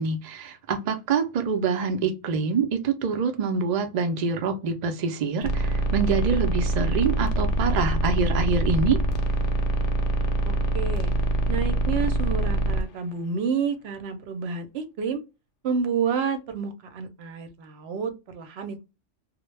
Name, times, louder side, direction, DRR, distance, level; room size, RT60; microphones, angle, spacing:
voice 1, 0.0-9.0, right 5 dB, 85° right, 0.3 m, -25 dB
sound 1, 5.4-12.8, right 1 dB, 70° left, 0.8 m, -24 dB
voice 2, 10.5-11.1 11.5-15.2 15.6-18.8, right 6 dB, 65° right, 0.7 m, -29 dB
2.1 x 2.0 x 3.1 m
omnidirectional pair, 1.3 m